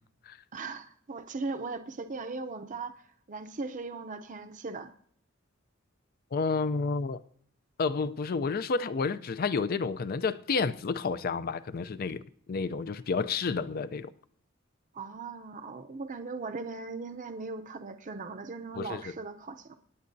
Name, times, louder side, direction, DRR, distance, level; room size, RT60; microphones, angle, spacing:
voice 1, 0.5-3.0 3.3-4.9 14.9-19.8, right 3 dB, 40° right, 0.6 m, -38 dB
voice 2, 6.3-7.2 7.8-12.2 12.5-14.1 18.8-19.1, left 4 dB, 45° left, 0.4 m, -30 dB
24.5 x 9.5 x 2.7 m
head